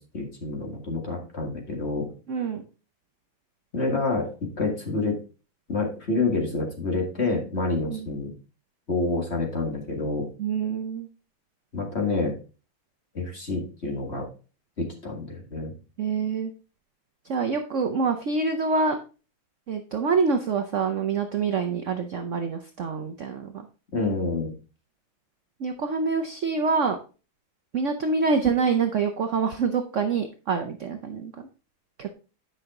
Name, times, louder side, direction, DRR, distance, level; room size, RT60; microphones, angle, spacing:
voice 1, 0.0-2.1 3.7-5.2 5.7-8.3 8.9-10.3 11.7-12.3 13.1-14.3 14.8-15.7 23.9-24.5, left 3 dB, 30° left, 1 dB, 2.0 m, -28 dB
voice 2, 2.3-2.6 7.8-8.1 10.4-11.1 16.0-16.5 17.3-19.0 19.7-23.7 25.6-27.0 27.7-31.3 32.0-32.1, right 5 dB, 70° right, 6 dB, 0.7 m, -26 dB
9.8 x 5.6 x 3.7 m, 0.34 s
omnidirectional pair, 2.3 m